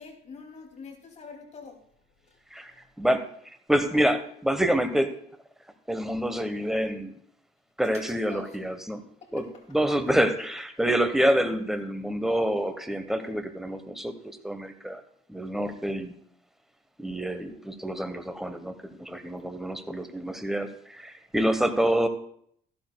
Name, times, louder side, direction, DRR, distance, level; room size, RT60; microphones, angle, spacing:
voice 1, 0.0-1.9 2.2-2.8 8.3-8.6 9.2-9.5 9.9-10.0, left 5 dB, 45° left, 2 dB, 2.6 m, -46 dB
voice 2, 2.5-3.2 3.7-5.1 5.9-7.1 7.8-9.0 9.3-15.0 15.3-16.1 17.0-22.1, right 1 dB, ahead, 8 dB, 1.0 m, -27 dB
14.0 x 12.0 x 2.2 m, 0.64 s
cardioid pair, 110°, 17 cm